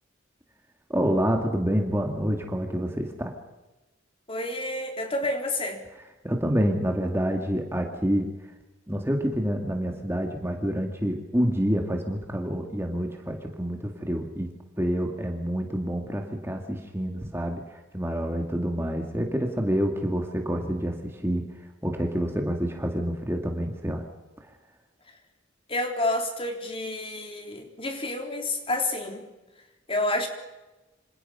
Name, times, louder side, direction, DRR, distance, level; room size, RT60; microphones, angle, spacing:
voice 1, 0.9-3.3 6.2-8.3 8.9-21.5 21.8-24.0 24.4-24.5, equal, 15° right, 2 dB, 2.1 m, -27 dB
voice 2, 4.3-5.8 25.7-29.2 29.9-30.3, left 2 dB, 30° left, 3 dB, 3.6 m, -29 dB
27.0 x 26.5 x 5.6 m, 1.1 s
head